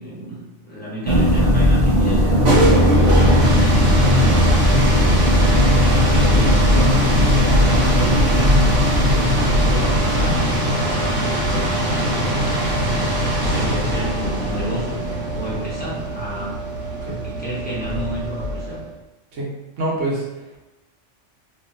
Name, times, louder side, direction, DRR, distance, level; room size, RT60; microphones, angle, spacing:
voice 1, 0.0-7.1 7.4-9.2 9.5-10.4 10.8-12.4 12.8-16.6 17.0-18.8, equal, 10° left, -9 dB, 0.9 m, -31 dB
sound 1, 1.1-10.7, left 1 dB, 55° right, 0.8 m, -17 dB
sound 2, 2.2-18.9, right 1 dB, 75° right, 1.4 m, -22 dB
voice 2, 19.8-20.6, right 2 dB, 90° right, -5 dB, 1.3 m, -26 dB
2.8 x 2.7 x 2.5 m, 0.99 s
omnidirectional pair, 1.2 m